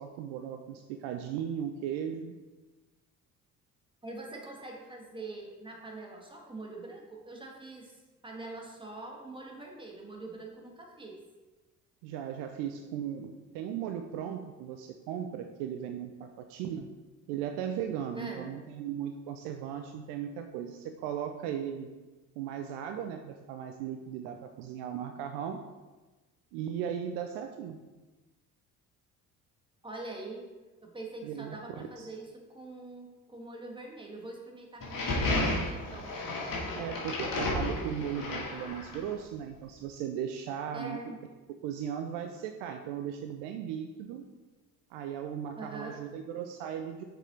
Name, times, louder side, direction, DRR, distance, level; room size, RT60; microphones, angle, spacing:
voice 1, 0.0-2.4 12.0-16.9 17.3-21.9 22.4-25.6 26.5-27.8 31.2-31.6 32.0-32.1 36.7-41.0 41.6-44.3 44.9-47.0, right 9 dB, 60° right, 6 dB, 0.6 m, -37 dB
voice 2, 4.0-11.2 18.1-18.5 29.8-30.5 30.8-36.1 40.7-41.2 45.6-46.0, right 2 dB, 10° right, 0 dB, 1.7 m, -44 dB
sound 1, 34.8-39.1, left 2 dB, 45° left, 2.1 m, -32 dB
6.7 x 4.9 x 3.9 m, 1.2 s
figure-of-eight pair, 50°, 46 cm